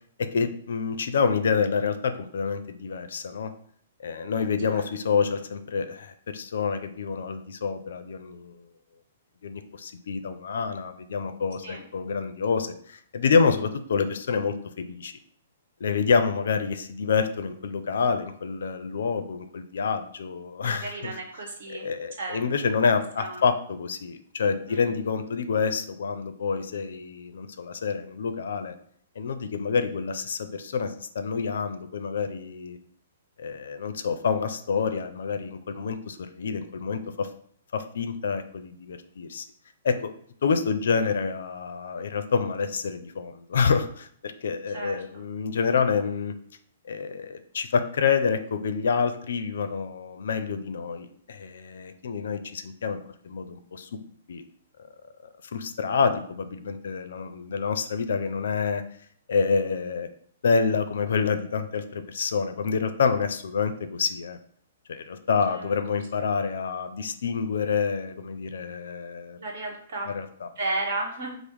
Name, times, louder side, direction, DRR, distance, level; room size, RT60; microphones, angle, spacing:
voice 1, 0.2-3.5 4.0-8.6 9.4-15.1 15.8-21.1 21.7-28.7 29.2-32.8 33.4-37.3 37.7-39.5 39.8-40.1 40.4-46.3 46.9-53.0 53.2-53.9 54.3-54.4 55.5-58.8 59.3-60.1 60.4-64.4 64.9-69.4 70.1-70.5, left 5 dB, 65° left, 9 dB, 0.5 m, -27 dB
voice 2, 20.6-21.9 22.2-22.4 23.2-23.4 24.7-25.0 44.7-45.0 65.5-65.7 69.4-70.1 70.6-71.4, right 2 dB, 45° right, 0 dB, 1.2 m, -33 dB
5.2 x 2.0 x 4.6 m, 0.62 s
hypercardioid pair, 175°, 0 cm